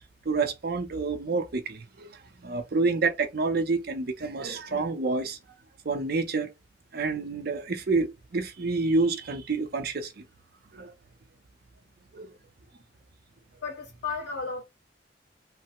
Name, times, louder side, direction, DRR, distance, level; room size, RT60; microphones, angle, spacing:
voice 1, 0.3-2.1 2.4-5.4 5.8-6.5 6.9-10.2 10.7-10.9 12.1-12.3, right 3 dB, 55° right, 0.6 m, -28 dB
voice 2, 13.6-14.6, left 4 dB, 65° left, 1.5 m, -33 dB
3.2 x 2.1 x 2.9 m
head